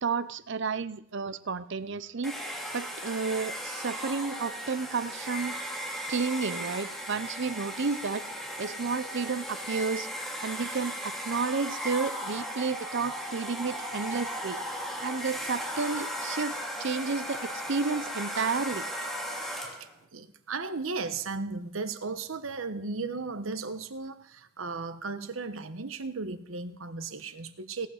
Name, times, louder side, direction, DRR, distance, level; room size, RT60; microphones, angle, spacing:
voice 1, 0.0-2.4 2.7-5.6 6.1-8.2 8.6-10.1 10.4-14.6 15.0-18.9, right 4 dB, 60° right, 14 dB, 0.7 m, -31 dB
Domestic sounds home sounds, 2.2-19.9, equal, ahead, 2.8 m, -36 dB
voice 2, 19.7-27.9, right 4 dB, 80° right, 10 dB, 1.1 m, -36 dB
17.5 x 8.6 x 6.6 m, 0.67 s
head